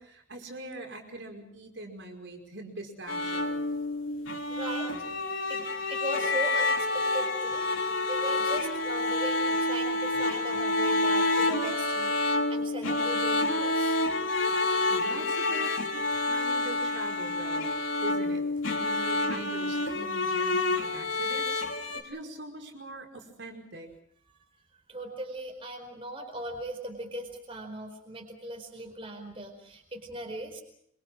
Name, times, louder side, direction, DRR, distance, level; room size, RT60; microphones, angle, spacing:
voice 1, 0.0-3.6 14.5-15.8 16.1-17.7 18.0-18.4 18.8-23.9, right 1 dB, 60° right, 3 dB, 5.2 m, -42 dB
sound 1, 3.1-22.0, left 2 dB, 80° left, 3.6 m, -28 dB
voice 2, 4.5-4.9 5.5-5.6 5.9-7.7 8.1-14.0 24.9-30.6, right 1 dB, 25° right, 3 dB, 4.5 m, -39 dB
26.0 x 24.5 x 6.4 m, 0.71 s
head